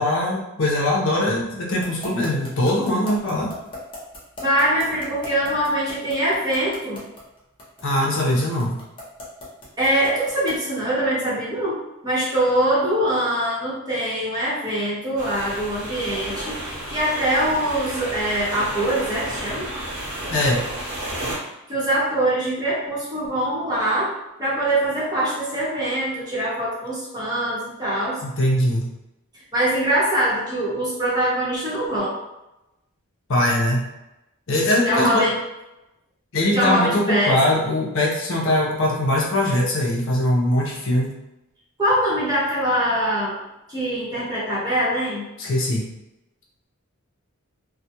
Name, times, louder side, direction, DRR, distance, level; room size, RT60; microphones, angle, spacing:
voice 1, 0.0-3.5 7.8-8.8 20.3-20.6 28.2-28.9 33.3-33.8 34.5-35.3 36.3-41.1 45.4-45.9, left 1 dB, 65° left, -2 dB, 0.6 m, -21 dB
sound 1, 1.8-10.7, left 2 dB, 25° left, 0.7 m, -38 dB
voice 2, 4.4-7.0 9.8-11.8 12.0-19.7 21.7-24.1 24.4-28.2 29.3-32.1 34.8-35.4 36.5-37.6 41.8-43.4 43.7-45.3, right 1 dB, 20° right, -8 dB, 0.9 m, -23 dB
sound 2, 15.2-21.4, right 1 dB, 75° right, 0.9 m, -32 dB
2.3 x 2.1 x 2.8 m, 0.94 s
head